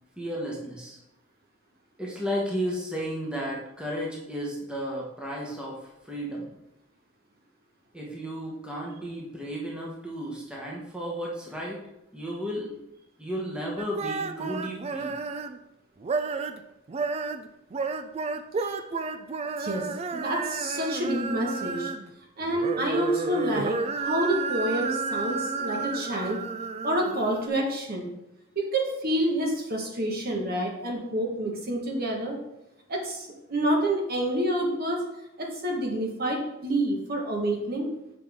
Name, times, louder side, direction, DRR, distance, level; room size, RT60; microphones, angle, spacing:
voice 1, 0.2-1.0 2.0-6.5 7.9-11.8 12.1-12.7 13.2-15.2, equal, 5° right, -4 dB, 1.1 m, -33 dB
sound 1, 13.8-15.6 16.0-16.6 16.9-22.1 22.4-27.5, right 4 dB, 30° right, 0.3 m, -32 dB
voice 2, 19.6-19.9 20.1-21.9 22.4-26.4 26.8-28.1 28.5-32.4 32.9-35.0 35.4-37.9, right 1 dB, 50° right, 0 dB, 1.3 m, -28 dB
6.6 x 5.3 x 3.6 m, 0.87 s
head